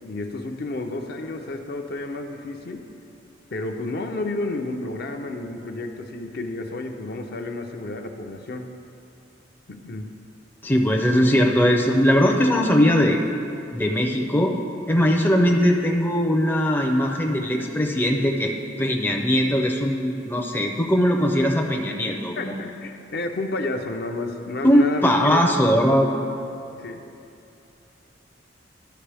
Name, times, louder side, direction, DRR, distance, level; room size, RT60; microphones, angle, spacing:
voice 1, 0.0-2.8 3.5-8.7 9.7-10.1 22.4-25.6 26.8-27.0, left 2 dB, 55° left, 5 dB, 0.5 m, -31 dB
voice 2, 10.6-13.2 13.7-14.5 14.9-18.5 18.8-22.6 24.6-26.1, equal, 10° left, 1 dB, 0.4 m, -20 dB
12.5 x 5.4 x 3.4 m, 2.7 s
head